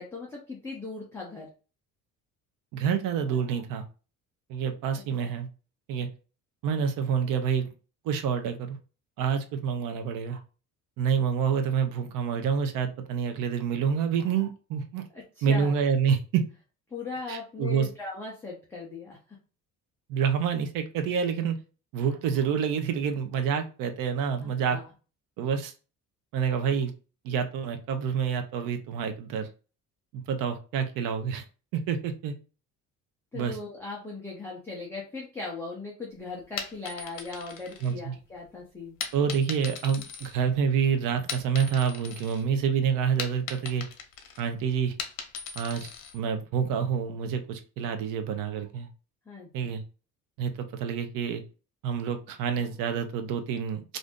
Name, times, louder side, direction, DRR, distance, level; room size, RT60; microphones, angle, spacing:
voice 1, 0.0-1.5 5.0-5.3 15.1-15.7 16.9-19.4 24.4-24.9 33.3-39.0 49.3-49.7, left 3 dB, 5° left, -4 dB, 0.5 m, -39 dB
voice 2, 2.7-3.8 4.5-5.5 5.9-6.1 6.6-7.7 8.0-8.8 9.2-10.4 11.0-15.0 15.4-16.4 17.3-17.9 20.1-21.6 21.9-24.8 25.4-25.7 26.3-26.9 27.2-29.5 30.1-31.4 31.7-32.3 33.3-33.6 37.8-38.1 39.1-43.8 44.4-44.9 45.6-45.9 46.1-48.9 49.5-49.8 50.4-51.4 51.8-53.8, right 7 dB, 80° right, 7 dB, 0.6 m, -27 dB
sound 1, 36.4-38.4 39.0-40.8 41.1-42.4 42.8-46.2, left 6 dB, 80° left, 0.8 m, -39 dB
2.5 x 2.5 x 3.5 m, 0.35 s
cardioid pair, 175°, 33 cm